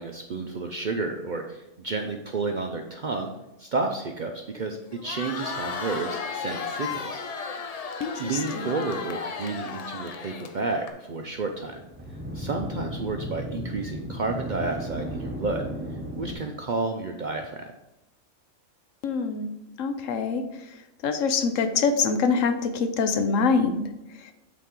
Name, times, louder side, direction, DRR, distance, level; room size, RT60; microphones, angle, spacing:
voice 1, 0.0-3.3 3.6-7.2 8.2-11.8 12.3-15.7 16.1-17.7, right 3 dB, 55° right, 3 dB, 0.5 m, -31 dB
Crowd, 4.9-10.9, left 5 dB, 55° left, 0.4 m, -34 dB
voice 2, 8.0-8.7 19.0-19.5 19.8-20.4 21.0-23.9, left 5 dB, 80° left, 8 dB, 1.0 m, -25 dB
sound 1, 11.4-16.3, equal, 10° right, 0.7 m, -35 dB
8.5 x 4.1 x 3.7 m, 0.92 s
omnidirectional pair, 1.3 m